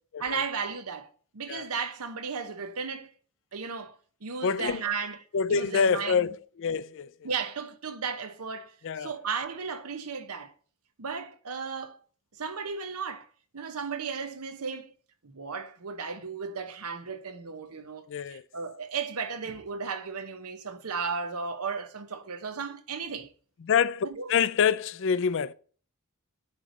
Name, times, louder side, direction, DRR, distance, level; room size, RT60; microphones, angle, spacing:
voice 1, 0.2-3.1 3.5-6.4 7.2-10.5 11.0-12.0 12.4-14.9 15.2-23.3 24.0-24.3, right 5 dB, 80° right, 0.9 m, -35 dB
voice 2, 4.4-4.8 5.3-6.3 6.6-7.1 8.8-9.1 18.1-18.4 23.7-25.5, left 6 dB, 60° left, 0.4 m, -26 dB
8.4 x 3.3 x 5.2 m
head